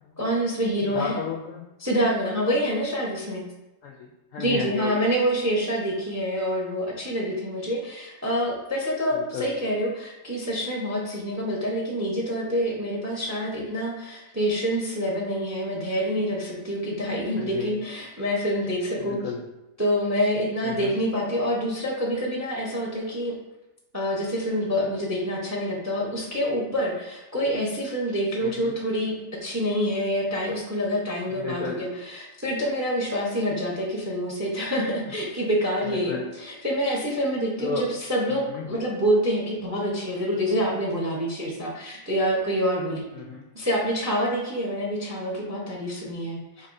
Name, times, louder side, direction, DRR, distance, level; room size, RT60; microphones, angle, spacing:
voice 1, 0.2-1.2 1.8-3.4 4.4-19.2 19.8-23.3 23.9-29.1 29.4-43.1 43.5-46.7, equal, 15° right, -3 dB, 0.5 m, -27 dB
voice 2, 0.9-1.6 3.8-5.0 9.1-9.5 17.4-17.8 19.0-19.4 20.6-20.9 28.4-28.7 31.4-31.8 35.8-36.2 37.6-37.9 38.3-38.6 43.1-43.4 46.6-46.7, left 5 dB, 70° left, -1 dB, 0.8 m, -33 dB
5.4 x 3.5 x 2.6 m, 1.0 s
omnidirectional pair, 1.8 m